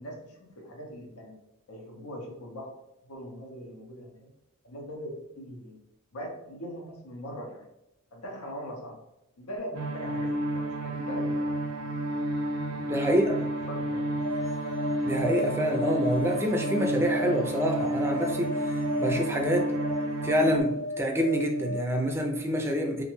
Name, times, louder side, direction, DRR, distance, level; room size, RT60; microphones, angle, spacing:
voice 1, 0.0-1.3 1.7-2.7 3.1-4.3 4.6-5.7 6.1-7.6 8.1-9.0 9.4-11.5 13.3-13.4 13.7-14.1, equal, 85° left, 0 dB, 0.7 m, -41 dB
sound 1, 9.7-20.6, right 1 dB, 80° right, 0.5 m, -30 dB
voice 2, 12.6-13.3 15.0-19.7 20.2-23.0, equal, 10° right, 2 dB, 0.3 m, -27 dB
sound 2, 14.2-21.9, left 2 dB, 30° left, 0.6 m, -35 dB
2.5 x 2.2 x 3.0 m, 0.84 s
head